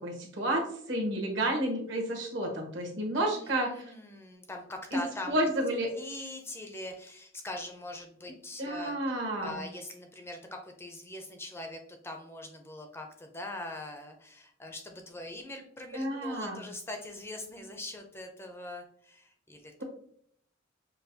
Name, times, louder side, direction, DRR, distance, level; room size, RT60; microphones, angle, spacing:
voice 1, 0.0-3.8 4.9-5.0 5.3-5.9 8.6-9.6 15.9-16.6, right 1 dB, 65° right, 1 dB, 1.1 m, -31 dB
voice 2, 3.2-5.5 6.0-8.9 9.4-19.8, left 1 dB, 10° left, 4 dB, 0.4 m, -42 dB
5.5 x 2.2 x 2.6 m, 0.64 s
head